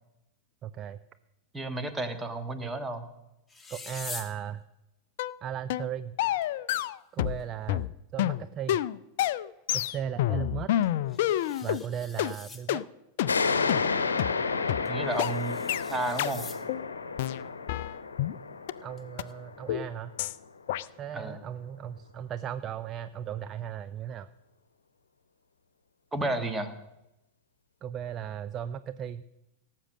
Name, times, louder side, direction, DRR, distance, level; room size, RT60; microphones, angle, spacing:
voice 1, 0.6-1.0 3.7-4.6 5.4-6.2 7.1-8.8 9.7-10.7 11.6-12.8 18.8-20.1 21.0-24.3 27.8-29.2, right 9 dB, 30° right, 13 dB, 0.4 m, -36 dB
voice 2, 1.5-3.1 14.9-16.4 21.1-21.4 26.1-26.7, right 2 dB, 15° right, 9 dB, 1.4 m, -32 dB
sound 1, 3.5-4.4 6.4-6.5 6.8-6.9 7.4-7.5 10.8-12.7 14.9-16.6 19.0-19.3, left 3 dB, 10° left, 1.2 m, -44 dB
sound 2, 5.2-5.4 5.7-5.9 6.2-7.4 7.7-11.8 12.2-12.3 12.7-12.8 13.2-13.3 13.7-13.8 14.2-14.3 14.7-14.8 15.2-15.3 15.7-15.8 16.2-16.3 16.7-16.8 17.2-18.4 18.7-18.8 19.2-19.3 19.7-19.9 20.2-20.3 20.7-20.8, left 13 dB, 55° left, 0.4 m, -28 dB
sound 3, 13.3-20.4, left 4 dB, 70° left, 0.9 m, -31 dB
17.5 x 7.5 x 6.4 m, 0.93 s
figure-of-eight pair, 90°, 0 cm